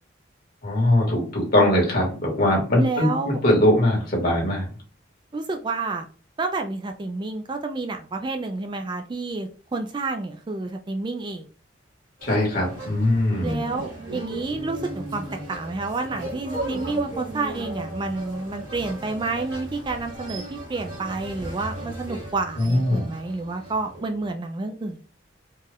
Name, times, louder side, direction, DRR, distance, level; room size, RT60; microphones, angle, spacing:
voice 1, 0.6-4.7 12.2-13.6 22.6-23.1, left 1 dB, 50° left, -1 dB, 1.7 m, -21 dB
voice 2, 2.8-3.4 5.3-6.1 6.4-11.5 13.4-25.0, right 3 dB, 25° right, 5 dB, 0.3 m, -29 dB
sound 1, 12.2-24.3, right 1 dB, 85° right, 1.8 m, -36 dB
4.4 x 2.4 x 3.4 m, 0.38 s
head